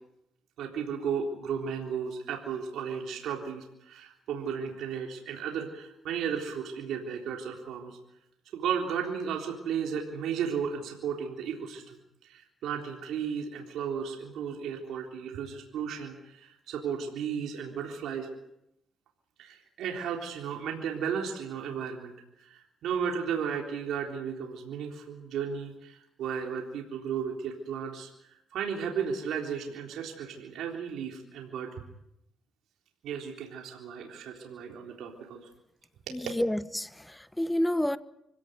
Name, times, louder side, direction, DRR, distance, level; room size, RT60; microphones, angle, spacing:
voice 1, 0.6-8.0 8.5-18.3 19.4-22.1 22.4-31.7 33.0-35.5 36.1-36.2, right 7 dB, 80° right, 3.7 m, -34 dB
voice 2, 36.1-38.0, left 1 dB, 5° left, 1.1 m, -29 dB
26.0 x 17.0 x 9.3 m
cardioid pair, 90°, 0 cm